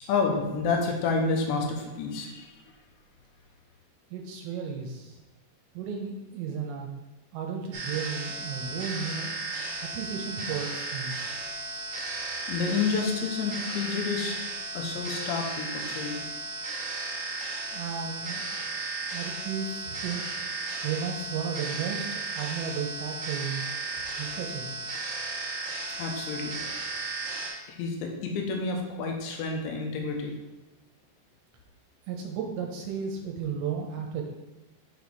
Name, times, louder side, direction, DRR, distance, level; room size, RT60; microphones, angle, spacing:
voice 1, 0.1-2.5 12.5-14.4 14.7-16.2 26.0-26.5 27.7-30.3, left 4 dB, 85° left, 2 dB, 3.1 m, -29 dB
voice 2, 4.1-5.2 5.7-6.9 7.3-9.3 9.9-11.3 17.7-18.5 19.1-20.4 20.8-23.6 24.2-24.7 32.1-34.2, right 6 dB, 80° right, 2 dB, 2.8 m, -34 dB
sound 1, 7.7-27.5, right 3 dB, 55° right, 2.3 m, -35 dB
7.0 x 4.2 x 4.6 m, 1.1 s
omnidirectional pair, 5.2 m